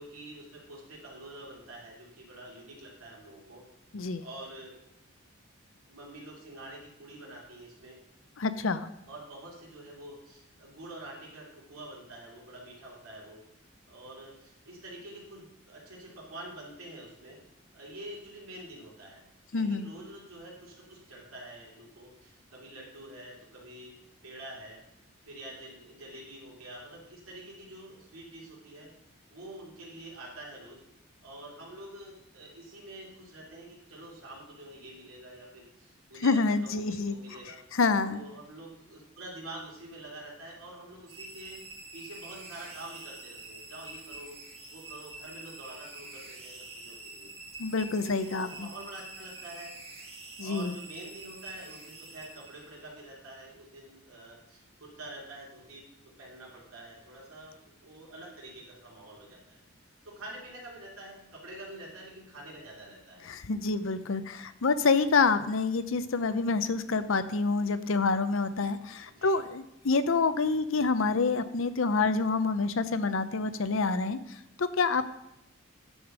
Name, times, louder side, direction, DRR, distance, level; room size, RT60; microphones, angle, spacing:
voice 1, 0.0-3.6 4.2-4.8 5.9-8.0 9.1-13.4 13.9-17.4 17.7-19.2 19.5-23.9 24.2-24.8 25.2-30.8 31.2-37.6 38.1-41.6 41.9-47.3 48.0-49.7 50.4-59.6 60.0-63.3 66.0-66.1 67.5-67.6 69.1-69.3 70.7-70.9, right 1 dB, 85° right, -3 dB, 2.7 m, -47 dB
voice 2, 3.9-4.2 8.4-8.9 19.5-19.9 36.2-37.2 37.7-38.2 47.6-48.7 50.4-50.8 63.3-75.0, left 4 dB, 70° left, 12 dB, 0.6 m, -27 dB
sound 1, 41.1-52.9, right 2 dB, 25° right, 1.4 m, -46 dB
9.8 x 5.2 x 6.1 m, 0.83 s
head